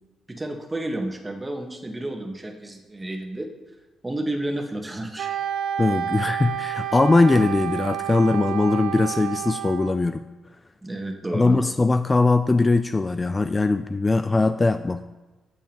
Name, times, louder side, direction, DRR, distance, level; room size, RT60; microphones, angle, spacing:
voice 1, 0.3-3.5 4.0-5.3 10.8-11.6, right 1 dB, 20° right, 3 dB, 1.4 m, -31 dB
Wind instrument woodwind instrument, 5.2-10.0, right 10 dB, 75° right, 0.5 m, -30 dB
voice 2, 5.8-10.2 11.3-15.0, left 3 dB, 25° left, 10 dB, 0.3 m, -20 dB
12.5 x 7.1 x 3.0 m, 1.2 s
cardioid pair, 75°, 0 cm